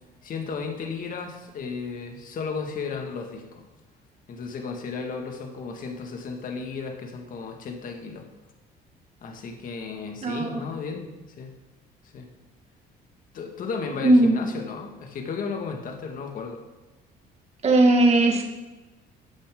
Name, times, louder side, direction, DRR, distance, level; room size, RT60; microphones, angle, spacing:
voice 1, 0.2-3.6 4.3-8.3 9.2-11.1 11.4-11.5 12.1-12.3 13.3-16.6, left 5 dB, 55° left, 3 dB, 2.0 m, -34 dB
voice 2, 10.2-10.6 14.0-14.4 17.6-18.4, right 2 dB, 40° right, 2 dB, 2.0 m, -18 dB
14.0 x 8.6 x 3.9 m, 1.1 s
cardioid pair, 110°, 17 cm